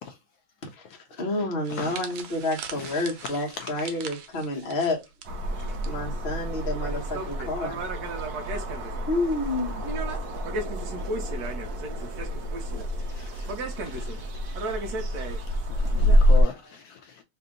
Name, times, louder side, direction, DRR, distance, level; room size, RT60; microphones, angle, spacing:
voice 1, 0.8-5.0 5.6-7.8 9.1-9.9, left 2 dB, 35° left, 1.0 m, -29 dB
sound 1, 1.6-5.9 6.2-6.4 7.3-7.6, right 7 dB, 85° right, 1.5 m, -42 dB
voice 2, 2.8-3.9 12.0-12.1 13.1-13.5 13.8-14.2 15.1-15.2 15.7-17.2, left 6 dB, 75° left, 0.9 m, -39 dB
sound 2, 5.2-16.4, equal, 60° right, 1.1 m, -27 dB
voice 3, 10.6-11.1 11.7-11.8 12.5-12.8 13.2-13.5 13.9-14.5 15.2-15.6 16.5-16.7, left 1 dB, 25° right, 0.6 m, -60 dB
3.3 x 2.8 x 3.6 m
omnidirectional pair, 2.1 m